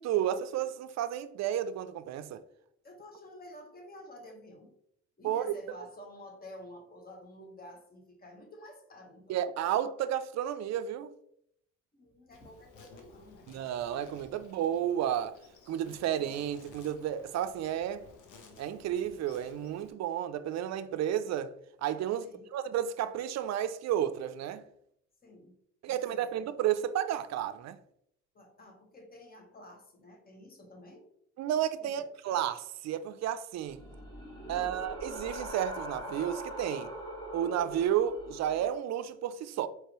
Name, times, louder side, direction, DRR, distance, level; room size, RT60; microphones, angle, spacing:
voice 1, 0.0-2.4 5.2-5.5 9.3-11.1 13.5-15.4 15.7-18.0 18.6-21.5 21.8-24.6 25.8-27.8 31.4-33.8 34.5-36.9 37.3-39.7, right 10 dB, 60° right, 0.4 m, -32 dB
voice 2, 2.8-4.7 5.2-9.4 11.9-13.5 22.2-22.5 25.2-25.6 25.9-26.4 28.3-31.1 31.8-32.1 34.4-34.8, left 1 dB, 30° left, 1.2 m, -50 dB
Insect, 12.3-19.9, left 3 dB, 80° left, 0.9 m, -56 dB
sound 1, 33.6-38.7, equal, 15° left, 1.4 m, -42 dB
4.6 x 3.2 x 3.0 m
cardioid pair, 90°, 30 cm